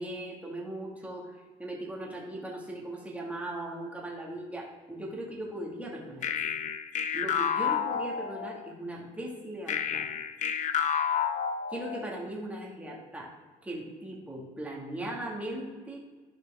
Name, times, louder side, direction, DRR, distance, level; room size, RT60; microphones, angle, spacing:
voice 1, 0.0-6.4 7.1-10.1 11.7-13.3 13.6-16.0, right 1 dB, 10° right, -3 dB, 2.3 m, -38 dB
sound 1, 6.2-8.7 9.7-12.2, left 7 dB, 45° left, 0.6 m, -30 dB
12.5 x 4.9 x 3.7 m, 1.4 s
cardioid pair, 110°, 17 cm